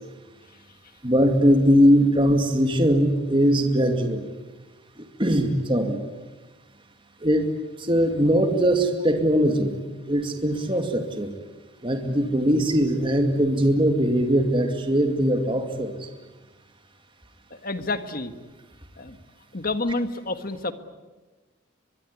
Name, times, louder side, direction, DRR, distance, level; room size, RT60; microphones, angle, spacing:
voice 1, 1.0-4.3 5.0-6.0 7.2-7.5 7.8-9.8 10.1-11.3 11.8-16.1, equal, 25° right, 5 dB, 2.3 m, -21 dB
voice 2, 17.5-18.3 19.0-19.2 19.5-20.7, left 2 dB, 45° left, 10 dB, 1.6 m, -29 dB
23.0 x 23.0 x 9.8 m, 1.2 s
head